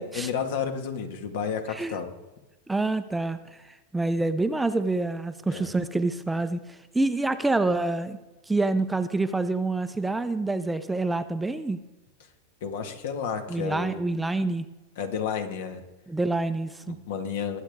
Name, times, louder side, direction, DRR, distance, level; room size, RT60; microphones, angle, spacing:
voice 1, 0.0-2.1 5.5-5.7 12.6-14.1 15.0-15.8 16.9-17.6, left 7 dB, 70° left, 6 dB, 1.9 m, -31 dB
voice 2, 2.7-3.4 3.9-8.2 8.5-11.8 13.5-14.6 16.1-17.0, right 2 dB, 5° right, 10 dB, 0.6 m, -27 dB
21.5 x 8.3 x 3.6 m, 1.1 s
hypercardioid pair, 125°, 0 cm